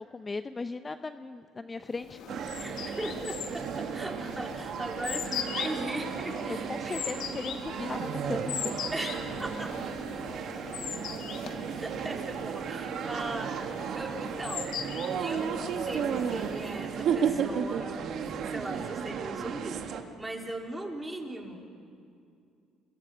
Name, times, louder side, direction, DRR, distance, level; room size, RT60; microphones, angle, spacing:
voice 1, 0.0-2.2 6.5-8.8, left 3 dB, 25° left, 10 dB, 0.7 m, -37 dB
sound 1, 1.9-16.9, left 8 dB, 70° left, 2.0 m, -40 dB
sound 2, 2.3-20.0, right 7 dB, 65° right, 1.6 m, -34 dB
voice 2, 2.6-7.0 8.9-9.9 11.8-13.7 13.9-14.7 15.2-18.1 18.4-21.7, right 1 dB, 15° right, 1 dB, 3.9 m, -39 dB
30.0 x 23.5 x 5.6 m, 2.4 s
supercardioid pair, 70°, 0 cm